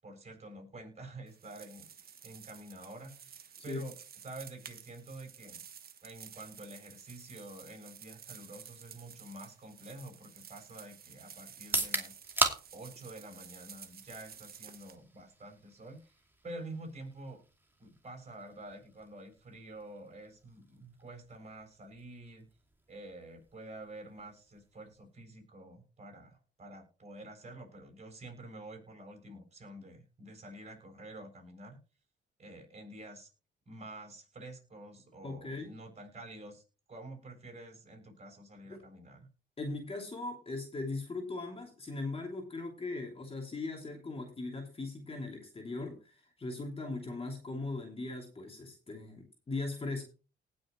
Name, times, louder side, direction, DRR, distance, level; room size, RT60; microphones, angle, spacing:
voice 1, 0.0-3.9 4.2-5.6 6.0-12.2 12.7-16.2 16.4-17.4 17.8-22.5 22.9-31.8 32.4-33.3 33.7-36.6 36.9-39.3, right 2 dB, 35° right, 3 dB, 7.3 m, -48 dB
sound 1, 1.3-14.9, right 8 dB, 50° right, 1.3 m, -52 dB
sound 2, 11.6-25.4, right 2 dB, 10° right, 2.6 m, -41 dB
voice 2, 35.2-35.7 38.7-38.8 39.6-50.1, left 3 dB, 30° left, 1 dB, 3.0 m, -39 dB
19.0 x 6.5 x 3.2 m, 0.34 s
cardioid pair, 90°, 20 cm